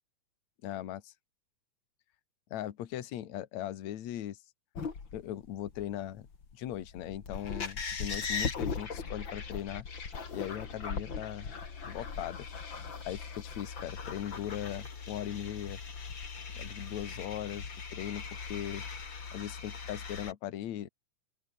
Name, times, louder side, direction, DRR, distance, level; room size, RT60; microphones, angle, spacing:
voice 1, 0.6-1.1 2.5-4.4 5.1-6.3 6.5-9.9 10.3-11.5 11.8-12.5 13.1-15.8 16.5-18.8 19.3-20.9, left 12 dB, 65° left, 2.6 m, -39 dB
sound 1, 4.7-20.3, left 5 dB, 40° left, 3.2 m, -39 dB
open air
omnidirectional pair, 3.7 m